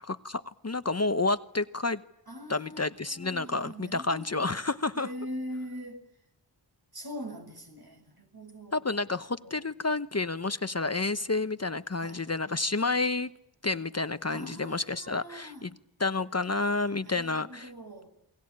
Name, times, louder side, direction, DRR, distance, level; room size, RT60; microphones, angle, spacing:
voice 1, 0.0-2.0 2.5-5.1 8.7-13.3 13.6-15.7 16.0-17.7, left 3 dB, 35° left, 1.0 m, -30 dB
voice 2, 2.3-4.6 5.0-6.0 6.9-8.8 9.5-9.6 12.0-12.2 14.3-15.6 17.0-18.1, equal, 55° right, 6.9 m, -42 dB
29.0 x 22.0 x 8.8 m
wide cardioid pair, 65°, 44 cm